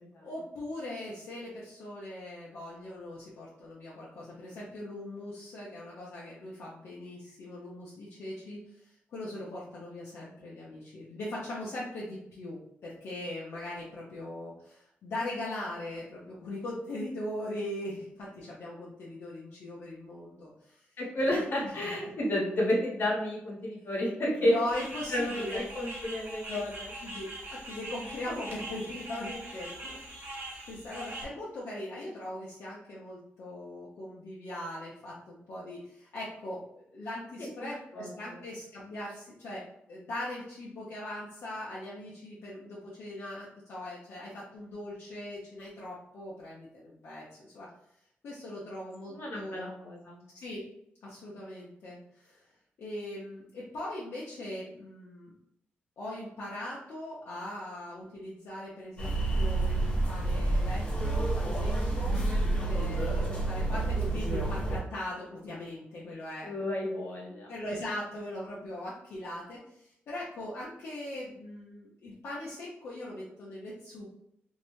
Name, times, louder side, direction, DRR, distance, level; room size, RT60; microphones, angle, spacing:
voice 1, 0.2-8.6 9.1-20.8 21.2-21.7 24.4-25.7 26.5-26.6 27.0-27.2 27.5-30.0 30.4-36.6 36.9-39.6 39.9-47.7 48.2-49.6 50.3-50.6 51.0-52.4 52.8-55.3 56.0-62.2 62.6-66.5 67.5-74.2, left 1 dB, 75° left, -6 dB, 0.6 m, -40 dB
voice 2, 21.0-24.6 25.1-26.9 37.6-38.1 49.1-50.2 66.4-67.5, left 1 dB, 60° left, -3 dB, 1.1 m, -31 dB
sound 1, 24.7-31.2, right 1 dB, 65° right, 0.9 m, -42 dB
sound 2, 59.0-64.8, right 2 dB, 25° left, 1.2 m, -29 dB
2.6 x 2.1 x 3.0 m, 0.74 s
cardioid pair, 100°, 4 cm